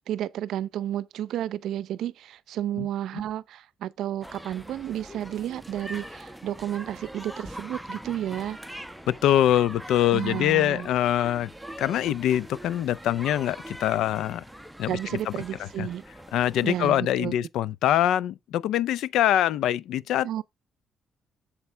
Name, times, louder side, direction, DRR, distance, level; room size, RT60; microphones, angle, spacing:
voice 1, 0.1-8.6 10.1-10.9 14.9-16.0 16.6-17.3 20.2-20.4, right 11 dB, 80° right, 0.6 m, -32 dB
sound 1, 4.2-16.9, equal, ahead, 0.9 m, -42 dB
voice 2, 9.1-11.5 11.8-14.4 14.8-15.0 15.3-15.4 15.8-15.9 16.3-20.4, left 12 dB, 85° left, 0.4 m, -24 dB
8.1 x 7.2 x 3.3 m
cardioid pair, 90°, 0 cm